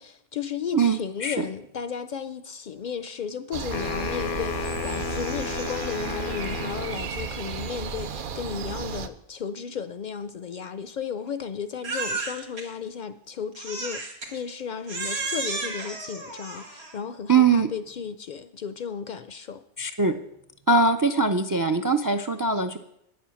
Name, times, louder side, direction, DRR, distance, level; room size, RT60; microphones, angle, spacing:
voice 1, 0.0-19.6, left 7 dB, 55° left, 0.6 m, -34 dB
voice 2, 0.7-1.4 17.3-17.7 19.8-20.1 20.7-22.8, right 4 dB, 35° right, 0.3 m, -21 dB
sound 1, 3.5-9.1, right 6 dB, 60° right, 0.8 m, -34 dB
sound 2, 3.7-7.0, left 7 dB, 80° left, 0.9 m, -33 dB
Crying sobbing, 11.8-12.6 13.5-14.3 14.9-17.0, right 3 dB, 90° right, 1.9 m, -32 dB
9.4 x 7.4 x 7.0 m
omnidirectional pair, 1.0 m